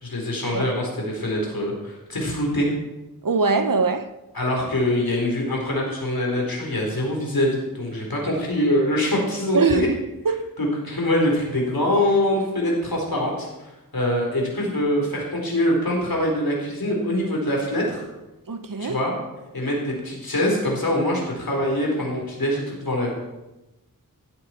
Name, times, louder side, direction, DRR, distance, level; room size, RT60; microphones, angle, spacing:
voice 1, 0.0-2.7 4.3-9.9 10.6-18.0 18.8-19.1 19.5-23.1, left 1 dB, 85° left, 4.4 m, -24 dB
voice 2, 3.2-4.1 9.5-9.9 10.2-10.5 18.5-19.0, right 4 dB, 65° right, 1.0 m, -22 dB
15.5 x 12.5 x 4.6 m
wide cardioid pair, 65°, 35 cm